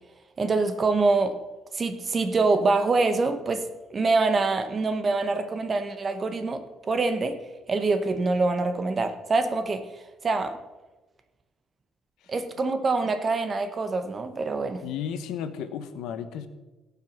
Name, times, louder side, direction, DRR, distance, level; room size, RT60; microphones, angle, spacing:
voice 1, 0.4-1.3 1.7-3.7 3.9-6.6 6.9-7.4 7.7-9.8 10.2-10.6 12.3-14.8, right 3 dB, 25° right, 9 dB, 0.9 m, -25 dB
voice 2, 14.8-16.5, left 8 dB, 85° left, 10 dB, 1.0 m, -33 dB
17.0 x 5.9 x 5.9 m, 1.2 s
cardioid pair, 175°, 0 cm